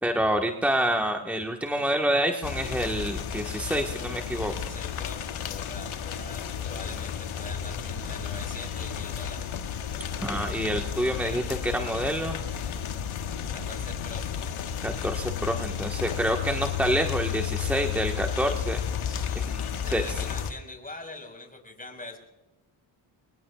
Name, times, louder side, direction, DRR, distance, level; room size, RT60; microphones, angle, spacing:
voice 1, 0.0-4.5 10.2-12.4 14.8-18.8 19.5-20.0, right 1 dB, 5° right, 2 dB, 1.5 m, -27 dB
sound 1, 2.4-20.5, left 8 dB, 75° left, 1.6 m, -32 dB
voice 2, 4.4-9.5 13.5-14.2 19.0-22.2, left 2 dB, 15° left, 3 dB, 5.1 m, -43 dB
25.5 x 20.5 x 2.4 m, 1.1 s
cardioid pair, 75°, 50 cm